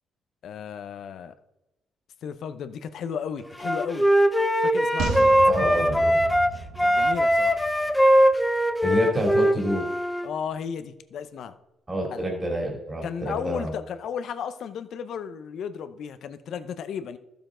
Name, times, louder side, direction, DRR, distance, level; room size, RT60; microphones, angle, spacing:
voice 1, 0.4-1.4 2.2-4.1 4.5-5.3 6.8-7.5 10.2-11.5 12.1-12.3 13.0-17.2, left 7 dB, 70° left, 11 dB, 0.7 m, -34 dB
Wind instrument woodwind instrument, 3.6-6.5 6.8-10.3, equal, 10° left, 0.8 m, -21 dB
sound 1, 5.0-8.4 8.7-8.8, right 5 dB, 90° right, 1.1 m, -35 dB
voice 2, 5.5-6.2 8.8-9.8 11.9-13.7, right 1 dB, 25° right, 0 dB, 2.5 m, -27 dB
12.5 x 6.9 x 3.8 m, 0.95 s
cardioid pair, 90°, 0 cm